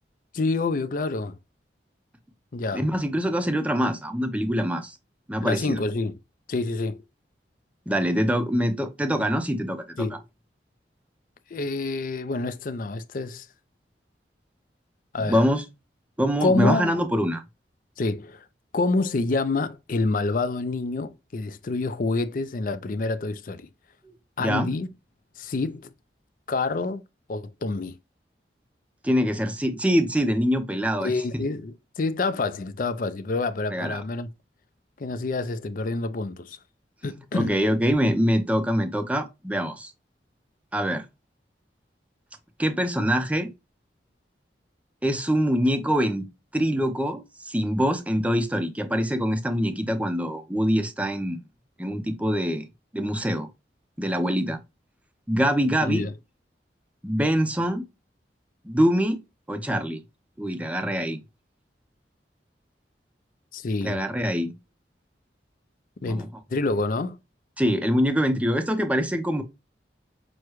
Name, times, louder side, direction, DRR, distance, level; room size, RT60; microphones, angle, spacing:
voice 1, 0.3-1.3 2.5-2.8 5.4-6.1 6.5-7.0 10.0-10.2 11.5-13.5 15.1-15.4 16.4-16.9 18.0-18.4 18.7-23.7 24.4-24.9 25.4-25.9 26.5-27.0 27.3-28.0 31.0-34.3 35.0-36.6 37.0-37.5 55.8-56.1 63.5-64.0 66.0-66.3 66.5-67.2, left 3 dB, 50° left, 0.4 m, -27 dB
voice 2, 2.7-5.0 5.3-5.8 7.9-10.2 15.3-15.6 16.2-17.4 24.0-24.1 24.4-24.7 29.0-31.1 33.7-34.0 37.3-39.9 40.7-41.0 42.6-43.5 45.0-46.3 46.5-51.4 51.8-52.7 52.9-53.5 54.0-54.6 55.3-56.0 57.0-57.8 58.6-59.2 59.5-60.0 60.4-61.2 63.8-64.5 66.1-66.3 67.6-69.4, equal, 10° right, 0.6 m, -24 dB
6.3 x 2.2 x 3.0 m
head